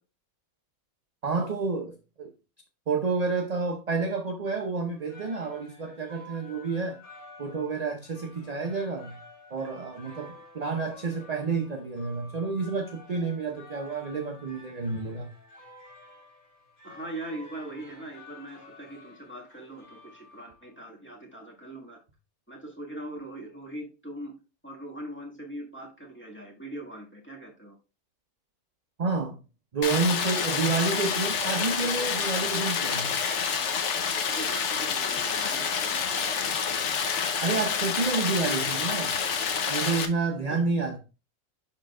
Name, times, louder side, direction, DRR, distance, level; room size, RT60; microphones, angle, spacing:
voice 1, 1.2-2.3 2.9-7.0 7.4-9.1 9.5-15.3 29.0-29.4 29.7-33.2 37.4-39.2 39.7-41.0, right 4 dB, 40° right, 0.6 m, -29 dB
sound 1, 4.9-20.7, left 2 dB, 85° left, 2.9 m, -51 dB
voice 2, 16.8-22.0 22.5-24.4 24.6-27.8 34.3-36.6 40.5-40.6, right 1 dB, 10° left, 1.5 m, -41 dB
Stream, 29.8-40.1, left 6 dB, 60° left, 1.0 m, -28 dB
11.5 x 3.8 x 2.3 m
omnidirectional pair, 1.5 m